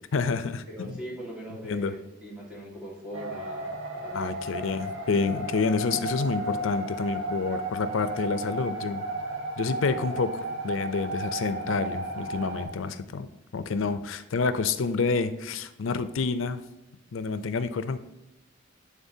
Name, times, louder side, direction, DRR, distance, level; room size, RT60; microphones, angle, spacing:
voice 1, 0.1-1.0 1.7-1.9 4.1-9.0 9.6-16.6 17.1-18.0, left 4 dB, 85° left, 12 dB, 0.5 m, -28 dB
voice 2, 0.7-4.4, equal, 5° right, -5 dB, 1.7 m, -40 dB
sound 1, 3.1-12.7, right 1 dB, 75° right, 1.1 m, -34 dB
11.0 x 3.6 x 2.7 m, 0.92 s
head